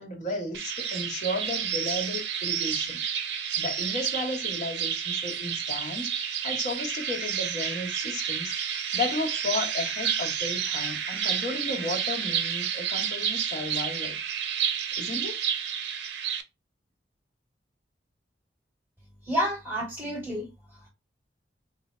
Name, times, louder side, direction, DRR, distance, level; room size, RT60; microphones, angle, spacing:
voice 1, 0.0-3.0 3.6-14.2 15.0-15.4, left 2 dB, 40° left, 1.0 m, -34 dB
sound 1, 0.5-16.4, right 8 dB, 70° right, 0.5 m, -30 dB
voice 2, 19.2-20.9, equal, 5° right, 2.4 m, -30 dB
3.3 x 2.0 x 4.2 m
head